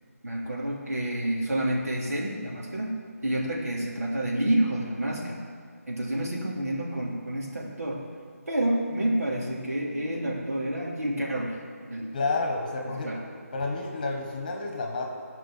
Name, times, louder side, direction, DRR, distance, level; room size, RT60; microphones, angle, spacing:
voice 1, 0.2-3.0 3.2-5.4 5.9-8.0 8.5-11.6 11.9-12.2 13.0-13.2, right 1 dB, 75° right, -3 dB, 3.2 m, -29 dB
voice 2, 12.1-13.3 13.5-15.1, left 3 dB, 30° left, 2 dB, 1.4 m, -30 dB
14.5 x 5.4 x 7.3 m, 2.1 s
figure-of-eight pair, 160°, 8 cm